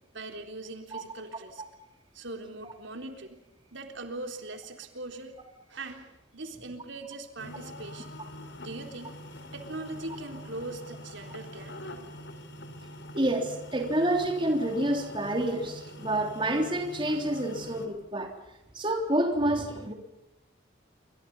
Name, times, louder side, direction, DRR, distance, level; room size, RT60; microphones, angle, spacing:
voice 1, 0.1-1.6 2.1-3.4 3.7-5.4 5.7-8.2 8.6-9.2 9.5-11.8, right 2 dB, 70° right, 5 dB, 3.7 m, -41 dB
sound 1, 7.4-17.9, left 1 dB, 65° left, 3.9 m, -44 dB
voice 2, 13.1-18.3 18.8-19.9, right 1 dB, 25° right, 3 dB, 3.5 m, -28 dB
28.5 x 25.0 x 5.5 m, 0.88 s
head